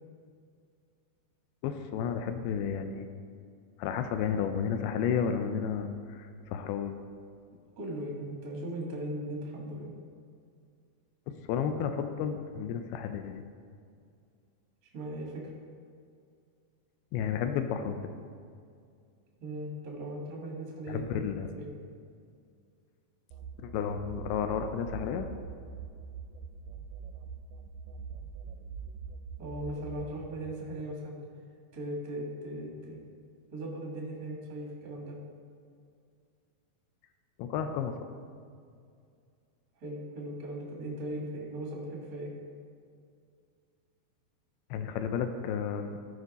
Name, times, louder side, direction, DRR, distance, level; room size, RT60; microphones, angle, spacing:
voice 1, 1.6-3.1 3.8-7.0 11.3-13.4 17.1-18.0 20.9-21.5 23.6-25.3 37.4-38.0 44.7-46.0, left 7 dB, 90° left, 7 dB, 2.5 m, -32 dB
voice 2, 7.8-9.9 14.9-15.5 19.4-21.3 21.6-21.7 29.4-31.2 31.7-33.0 33.5-35.2 39.8-42.3, right 1 dB, 45° right, -2 dB, 1.2 m, -38 dB
sound 1, 23.3-30.9, right 6 dB, 80° right, 2.1 m, -44 dB
14.0 x 5.2 x 4.1 m, 2.3 s
omnidirectional pair, 4.4 m